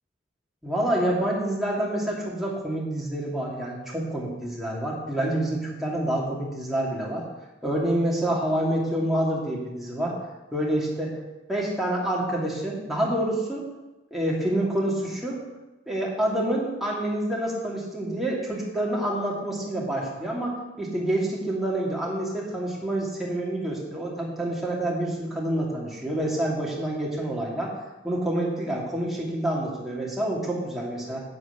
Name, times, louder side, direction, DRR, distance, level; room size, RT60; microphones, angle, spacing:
voice 1, 0.6-7.2 7.6-10.1 10.5-11.2 11.5-13.7 14.1-15.4 15.9-27.7 28.0-31.2, right 1 dB, ahead, -5 dB, 2.5 m, -27 dB
11.0 x 5.0 x 8.2 m, 1.1 s
head